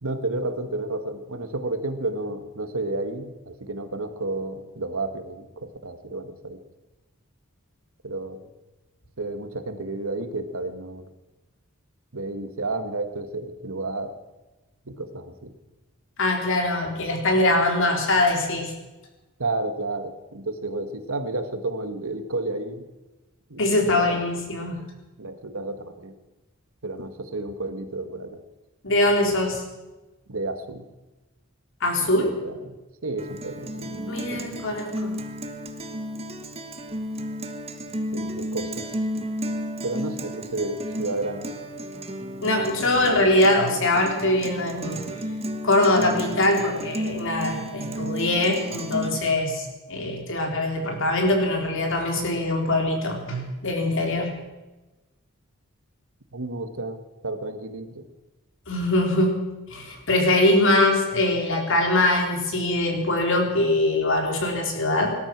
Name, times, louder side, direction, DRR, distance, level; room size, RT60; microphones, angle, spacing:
voice 1, 0.0-6.6 8.0-8.5 9.2-11.1 12.1-14.2 14.8-15.5 19.4-22.9 23.5-24.2 25.2-26.1 26.8-28.4 30.3-30.8 32.0-32.7 33.0-34.6 38.1-38.9 39.8-41.6 43.0-43.1 56.3-58.1, right 2 dB, 70° right, 9 dB, 1.6 m, -31 dB
voice 2, 16.2-18.7 23.6-24.8 28.8-29.6 31.8-32.3 34.1-35.2 42.4-45.0 45.6-54.3 58.7-59.4 59.7-65.2, left 1 dB, 65° left, 3 dB, 3.7 m, -22 dB
Guitar, 33.2-49.2, equal, 30° right, 1.3 m, -33 dB
19.0 x 12.5 x 6.0 m, 1.1 s
head